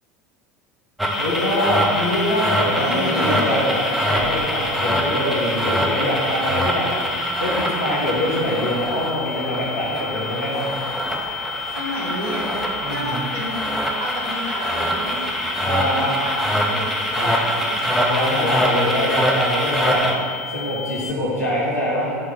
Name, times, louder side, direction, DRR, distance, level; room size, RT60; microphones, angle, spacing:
sound 1, 1.0-20.1, equal, ahead, 0.8 m, -24 dB
sound 2, 1.1-21.1, left 7 dB, 60° left, 0.4 m, -33 dB
voice 1, 1.2-6.9 7.4-10.7 12.8-13.2 15.6-16.1 17.1-17.4 18.0-20.0 20.5-22.2, left 1 dB, 80° left, -6 dB, 1.6 m, -24 dB
voice 2, 2.7-3.6 11.7-17.9, equal, 65° right, -4 dB, 1.4 m, -31 dB
7.3 x 3.7 x 5.9 m, 2.3 s
figure-of-eight pair, 75°, 8 cm